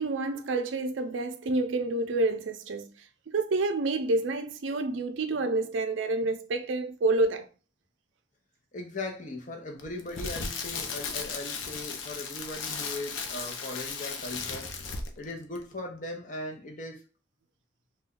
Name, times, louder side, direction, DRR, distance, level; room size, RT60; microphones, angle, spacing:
voice 1, 0.0-2.9 3.3-7.5, right 2 dB, 80° right, 0.4 m, -28 dB
voice 2, 8.7-14.7 15.2-17.0, left 2 dB, 40° left, 0.7 m, -38 dB
Crackle, 9.8-15.3 15.6-15.7, left 5 dB, 90° left, 0.5 m, -36 dB
2.5 x 2.2 x 3.6 m
head